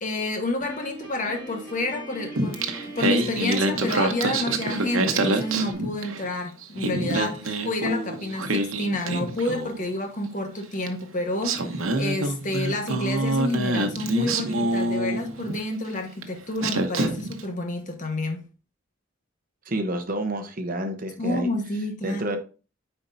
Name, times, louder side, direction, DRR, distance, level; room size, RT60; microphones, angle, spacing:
voice 1, 0.0-18.4 21.2-22.3, left 2 dB, 40° left, 1.3 m, -29 dB
Piano, 0.6-5.7, equal, 5° left, 4.0 m, -39 dB
Singing, 2.4-6.3 6.6-9.8 10.9-11.0 11.4-15.6 16.2-16.3 16.6-17.4, right 2 dB, 85° right, 0.9 m, -26 dB
voice 2, 19.7-21.5 22.0-22.4, right 1 dB, 45° right, 0.9 m, -29 dB
9.5 x 4.5 x 2.6 m
head